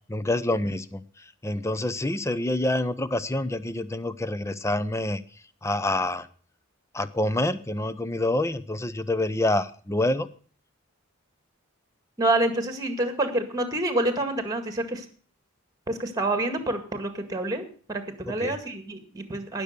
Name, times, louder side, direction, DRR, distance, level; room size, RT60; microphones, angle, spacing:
voice 1, 0.1-5.2 5.6-6.3 6.9-10.3 18.4-18.6, left 1 dB, 15° left, 14 dB, 0.6 m, -27 dB
voice 2, 12.2-15.1 15.9-19.6, right 2 dB, 15° right, 8 dB, 1.9 m, -27 dB
18.5 x 6.8 x 6.7 m, 0.44 s
head